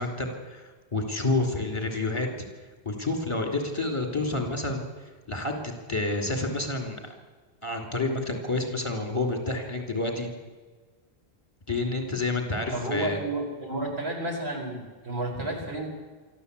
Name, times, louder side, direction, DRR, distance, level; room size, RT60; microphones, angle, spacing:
voice 1, 0.0-2.5 2.9-4.8 5.3-5.6 5.9-7.1 7.6-10.3 11.7-13.2, left 2 dB, 30° left, 3 dB, 3.5 m, -29 dB
voice 2, 12.7-15.9, right 2 dB, 90° right, 0 dB, 4.9 m, -31 dB
24.0 x 14.0 x 8.4 m, 1.4 s
omnidirectional pair, 1.0 m